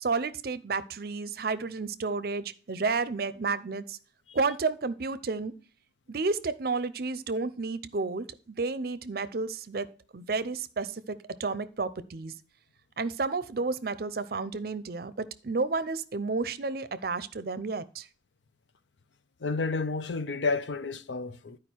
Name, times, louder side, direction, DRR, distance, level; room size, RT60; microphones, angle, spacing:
voice 1, 0.0-4.0 4.3-5.5 6.1-12.3 13.0-18.1, right 4 dB, 55° right, 0.6 m, -31 dB
voice 2, 19.4-21.6, left 4 dB, 80° left, 0.7 m, -30 dB
11.0 x 4.9 x 4.5 m
head